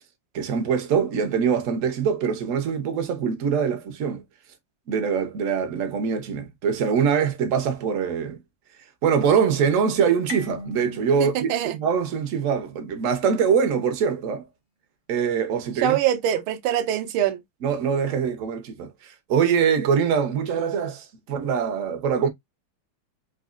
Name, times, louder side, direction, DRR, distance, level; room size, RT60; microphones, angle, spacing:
voice 1, 0.3-4.2 4.9-8.4 9.0-11.5 11.8-14.5 15.1-16.0 17.6-22.3, right 6 dB, 60° right, 0.8 m, -23 dB
Marimba xylophone, 10.3-12.9, left 2 dB, 65° left, 1.3 m, -40 dB
voice 2, 11.2-11.8 15.8-17.4, right 10 dB, 80° right, 1.5 m, -24 dB
4.1 x 2.8 x 2.4 m
omnidirectional pair, 2.4 m